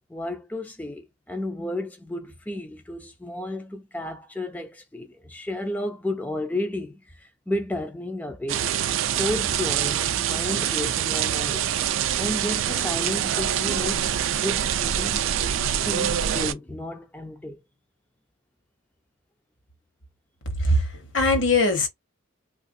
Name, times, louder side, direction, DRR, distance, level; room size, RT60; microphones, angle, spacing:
voice 1, 0.1-11.7 12.2-15.2 15.8-17.6, left 1 dB, 10° left, 0.4 m, -32 dB
sound 1, 8.5-16.5, right 10 dB, 70° right, 0.4 m, -25 dB
voice 2, 20.6-21.9, left 2 dB, 60° left, 1.0 m, -21 dB
3.3 x 2.4 x 2.6 m
head